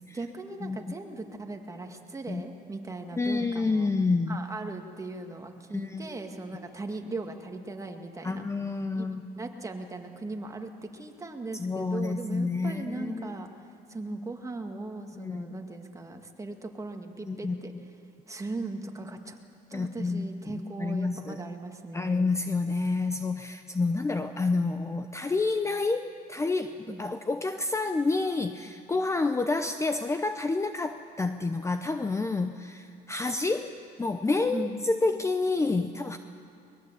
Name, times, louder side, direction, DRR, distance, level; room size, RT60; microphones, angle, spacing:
voice 1, 0.1-3.9 4.3-8.5 8.9-9.1 9.4-13.5 13.9-17.7 18.3-19.4 19.7-22.3 26.9-27.0 34.5-34.8, right 2 dB, 20° right, 4 dB, 2.1 m, -38 dB
voice 2, 3.2-4.4 5.7-6.1 8.2-9.3 11.6-13.3 15.1-15.5 17.3-17.6 19.7-21.4 21.9-36.2, left 3 dB, 15° left, 8 dB, 0.8 m, -29 dB
22.5 x 21.0 x 8.3 m, 2.4 s
cardioid pair, 110°, 17 cm